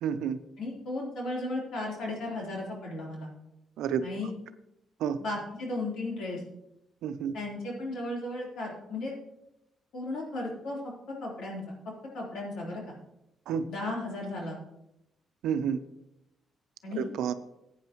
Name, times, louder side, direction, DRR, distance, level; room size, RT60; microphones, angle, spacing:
voice 1, 0.0-0.4 3.8-4.0 5.0-5.2 7.0-7.3 13.5-13.6 15.4-15.8 16.9-17.3, right 8 dB, 85° right, 11 dB, 0.7 m, -29 dB
voice 2, 0.6-3.3 4.0-4.3 5.2-6.4 7.3-9.1 9.9-11.7 12.1-12.8 13.7-14.6 16.8-17.1, left 2 dB, 75° left, -2 dB, 3.7 m, -35 dB
15.0 x 8.6 x 3.1 m, 0.87 s
cardioid pair, 90°, 0 cm